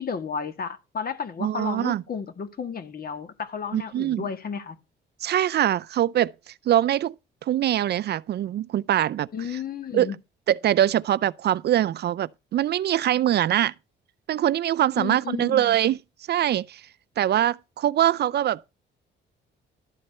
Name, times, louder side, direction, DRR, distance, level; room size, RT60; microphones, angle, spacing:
voice 1, 0.0-4.8 9.3-10.2 15.0-15.8, left 6 dB, 50° left, 1.8 m, -33 dB
voice 2, 1.4-2.0 3.7-4.2 5.2-7.2 7.4-9.3 9.9-10.1 10.5-13.7 14.3-16.0 16.3-16.8 17.2-18.7, right 12 dB, 55° right, 0.4 m, -23 dB
12.5 x 4.2 x 6.5 m
cardioid pair, 90°, 20 cm